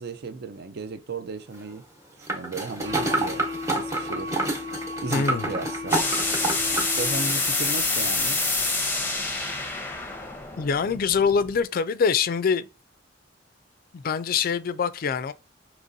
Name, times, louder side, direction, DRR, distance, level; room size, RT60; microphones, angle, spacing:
voice 1, 0.0-1.8 2.2-4.4 5.0-6.0 6.9-8.4, right 4 dB, 55° right, 0.5 m, -35 dB
sound 1, 2.3-6.9 7.3-7.4, right 2 dB, 15° right, 1.0 m, -28 dB
sound 2, 2.8-7.6, left 3 dB, 85° right, 1.3 m, -35 dB
voice 2, 5.1-5.5 10.6-12.7 13.9-15.3, left 6 dB, 50° left, 0.3 m, -24 dB
sound 3, 5.9-11.6, left 3 dB, 10° left, 0.7 m, -27 dB
5.1 x 2.9 x 2.6 m
head